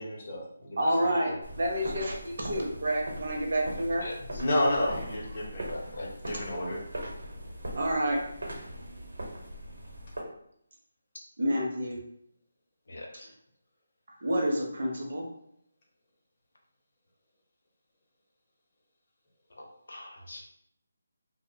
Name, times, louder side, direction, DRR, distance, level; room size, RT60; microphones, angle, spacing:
voice 1, 0.0-1.4 4.4-5.7 6.0-6.8, left 1 dB, 30° left, -4 dB, 0.6 m, -31 dB
voice 2, 0.8-4.1 7.7-8.2 11.4-12.0 14.2-15.3, equal, 50° right, -1 dB, 0.6 m, -29 dB
sound 1, 1.4-10.2, right 1 dB, 80° right, 0.8 m, -40 dB
voice 3, 3.9-4.4 4.8-5.0 5.7-6.1 7.0-7.1 12.9-13.3 19.6-20.4, left 1 dB, 75° left, 0 dB, 0.6 m, -38 dB
2.5 x 2.0 x 2.6 m, 0.73 s
hypercardioid pair, 175°, 0 cm